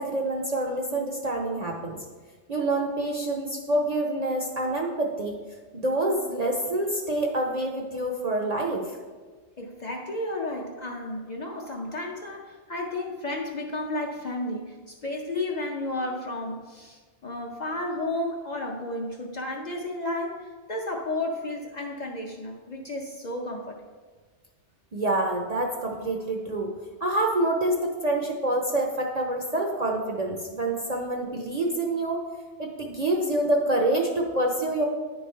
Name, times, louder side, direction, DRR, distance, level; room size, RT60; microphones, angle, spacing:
voice 1, 0.0-2.0 2.5-5.4 5.7-8.8 24.9-26.7 27.0-32.2 32.6-34.8, right 1 dB, 45° right, 0 dB, 0.5 m, -27 dB
voice 2, 9.6-23.8, left 2 dB, 50° left, 0 dB, 0.6 m, -32 dB
9.8 x 3.3 x 4.3 m, 1.4 s
omnidirectional pair, 1.2 m